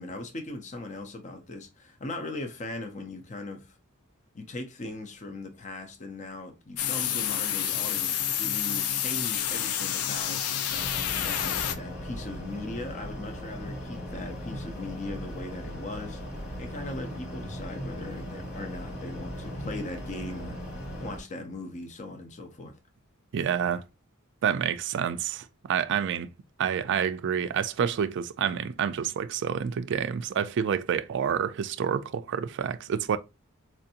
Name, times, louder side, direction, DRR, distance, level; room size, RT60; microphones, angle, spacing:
voice 1, 0.0-3.8 4.3-10.4 11.1-16.2 16.6-20.6 21.0-22.8, left 2 dB, 35° left, 0.5 m, -39 dB
sound 1, 6.8-11.8, left 9 dB, 85° left, 0.4 m, -29 dB
sound 2, 10.7-21.2, equal, 50° left, 1.7 m, -38 dB
voice 2, 23.3-23.8 24.4-26.3 26.6-33.2, right 8 dB, 55° right, 0.3 m, -28 dB
4.4 x 2.5 x 2.7 m
head